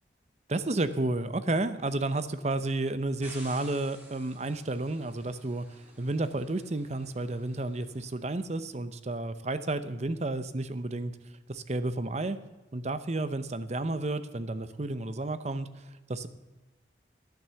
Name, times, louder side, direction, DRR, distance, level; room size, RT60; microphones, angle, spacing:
voice 1, 0.5-11.1 11.5-12.4 12.7-16.3, right 2 dB, 40° right, 12 dB, 0.7 m, -31 dB
sound 1, 3.2-8.3, right 1 dB, 10° right, 2.8 m, -53 dB
14.0 x 9.1 x 7.0 m, 1.2 s
head